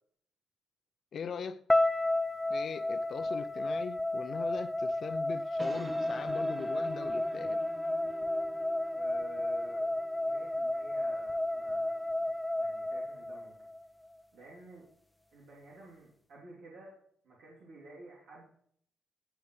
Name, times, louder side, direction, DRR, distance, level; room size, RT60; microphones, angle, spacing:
voice 1, 1.1-1.6 2.5-7.6, left 6 dB, 55° left, 0.6 m, -41 dB
sound 1, 1.7-13.8, left 1 dB, 5° left, 0.7 m, -32 dB
sound 2, 5.3-12.5, right 2 dB, 25° right, 1.0 m, -48 dB
voice 2, 8.9-9.9 10.2-12.1 12.6-13.7 14.3-14.8 15.3-17.0 17.2-18.4, right 2 dB, 75° right, 3.3 m, -52 dB
16.0 x 7.0 x 3.3 m
cardioid pair, 90°, 0 cm